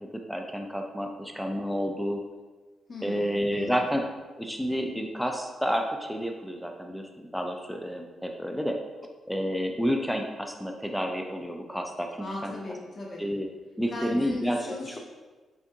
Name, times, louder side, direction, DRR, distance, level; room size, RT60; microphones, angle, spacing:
voice 1, 0.0-2.2 3.0-4.0 4.4-8.8 9.3-12.5 13.2-13.5 13.8-14.6, equal, ahead, 3 dB, 0.4 m, -30 dB
voice 2, 2.9-3.8 12.2-13.2 13.9-15.0, left 2 dB, 45° left, -3 dB, 1.1 m, -37 dB
5.8 x 2.5 x 2.8 m, 1.3 s
cardioid pair, 105°, 0 cm